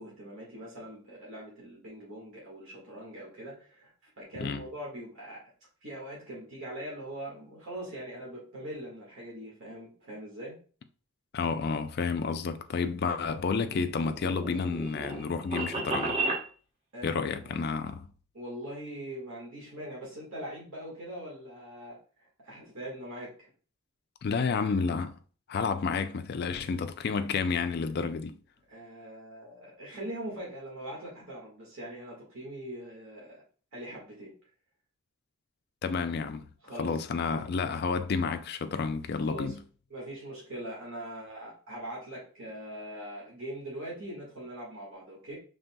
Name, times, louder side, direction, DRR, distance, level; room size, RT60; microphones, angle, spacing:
voice 1, 0.0-5.4 5.8-10.6 16.9-17.6 18.3-23.5 28.7-33.4 33.7-34.3 36.6-37.0 37.3-37.5 39.1-39.6 39.9-45.3, right 1 dB, 60° right, 1.6 m, -42 dB
voice 2, 11.3-16.2 17.0-18.1 24.2-25.2 25.5-28.4 35.8-36.5 36.8-39.6, left 5 dB, 45° left, 0.3 m, -30 dB
sound 1, 13.4-16.4, right 2 dB, 25° right, 0.9 m, -33 dB
5.3 x 3.3 x 2.2 m
head